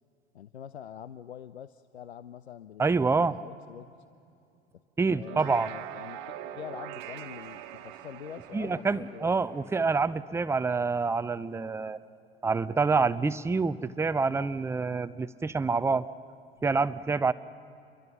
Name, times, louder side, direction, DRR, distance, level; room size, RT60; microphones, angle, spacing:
voice 1, 0.3-3.9 5.1-9.3, left 9 dB, 85° left, 15 dB, 0.5 m, -45 dB
voice 2, 2.8-3.4 5.0-5.7 8.5-12.0 12.4-16.1 16.6-17.3, right 4 dB, 10° right, 13 dB, 0.6 m, -27 dB
sound 1, 5.1-10.6, right 11 dB, 55° right, 1.3 m, -44 dB
28.5 x 23.0 x 5.9 m, 2.6 s
figure-of-eight pair, 75°, 32 cm